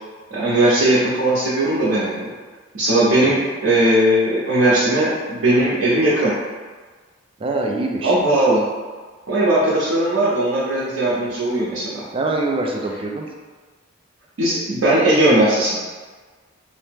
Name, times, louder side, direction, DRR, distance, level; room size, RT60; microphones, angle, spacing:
voice 1, 0.3-2.3 2.7-6.3 8.0-8.6 9.3-12.0 14.4-15.8, right 1 dB, 85° right, -9 dB, 0.7 m, -18 dB
voice 2, 7.4-8.2 12.1-13.3, right 2 dB, 25° right, 1 dB, 0.3 m, -24 dB
2.7 x 2.1 x 3.3 m, 1.4 s
head